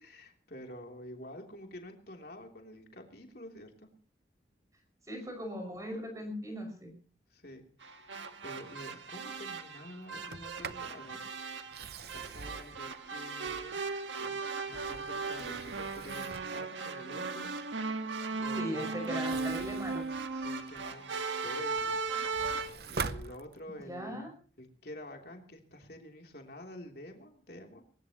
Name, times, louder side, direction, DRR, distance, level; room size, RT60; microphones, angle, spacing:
voice 1, 0.0-3.9 7.3-8.1 8.4-11.2 12.1-13.8 14.2-17.5 17.8-19.6 20.3-21.1 21.4-22.0 22.8-24.3 24.6-27.8, left 1 dB, 55° left, 2 dB, 3.2 m, -48 dB
voice 2, 5.1-6.9 18.6-20.0 23.8-24.3, equal, 15° right, 3 dB, 6.0 m, -39 dB
sound 1, 7.8-22.7, right 4 dB, 85° right, 1.6 m, -37 dB
Sliding door, 10.1-10.9 11.6-13.9 14.5-16.6 19.0-21.0 21.5-24.0, right 5 dB, 55° right, 0.7 m, -44 dB
21.0 x 19.5 x 3.0 m, 0.41 s
head